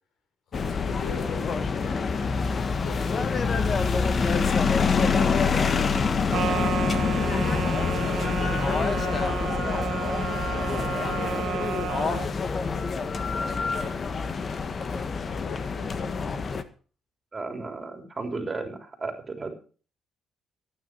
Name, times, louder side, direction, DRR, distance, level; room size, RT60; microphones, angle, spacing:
voice 1, 0.5-6.9 7.6-12.5 13.1-14.8 15.2-16.5, left 4 dB, 80° left, 8 dB, 4.1 m, -42 dB
sound 1, 0.5-16.6, left 5 dB, 45° left, 1.4 m, -26 dB
sound 2, 4.8-13.6, equal, 10° left, 4.7 m, -45 dB
sound 3, 6.3-12.3, right 11 dB, 70° right, 0.7 m, -32 dB
voice 2, 17.3-19.5, right 3 dB, 30° right, 5 dB, 3.5 m, -34 dB
14.5 x 9.5 x 6.1 m, 0.39 s
cardioid pair, 90°, 0 cm